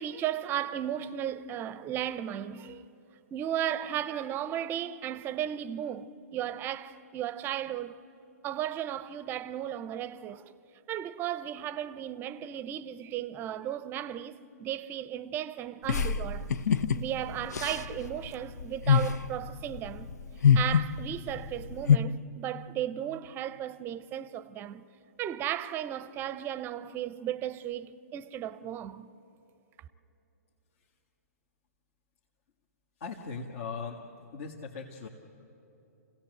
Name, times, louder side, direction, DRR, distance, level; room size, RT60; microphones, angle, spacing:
voice 1, 0.0-2.8 3.3-8.0 8.4-10.5 10.9-16.5 16.9-20.1 20.5-24.8 25.2-29.1, right 11 dB, 25° right, 0.6 m, -35 dB
sound 1, 15.9-22.0, left 7 dB, 75° left, 0.6 m, -26 dB
voice 2, 33.0-34.0 34.3-35.1, left 5 dB, 55° left, 1.7 m, -39 dB
27.0 x 17.0 x 7.8 m
hypercardioid pair, 130°, 9 cm